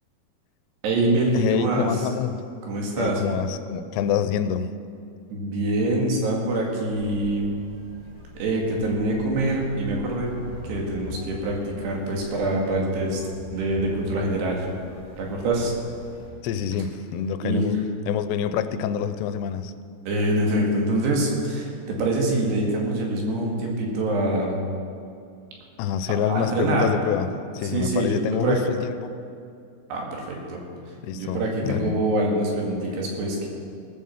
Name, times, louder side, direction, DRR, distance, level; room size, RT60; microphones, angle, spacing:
voice 1, 0.8-1.9 2.6-3.2 5.3-7.6 8.4-13.2 13.5-14.7 15.2-15.7 17.4-17.7 20.1-24.6 26.3-26.9 27.7-28.6 29.9-30.6 31.1-33.5, right 2 dB, 75° right, -1 dB, 4.1 m, -25 dB
voice 2, 1.3-2.4 3.0-4.7 16.4-17.8 18.1-19.7 25.8-27.3 27.5-29.1 31.0-32.0, left 8 dB, 85° left, 11 dB, 2.8 m, -26 dB
sound 1, 6.9-16.3, left 3 dB, 40° left, 3.4 m, -42 dB
18.5 x 7.6 x 7.2 m, 2.4 s
omnidirectional pair, 5.0 m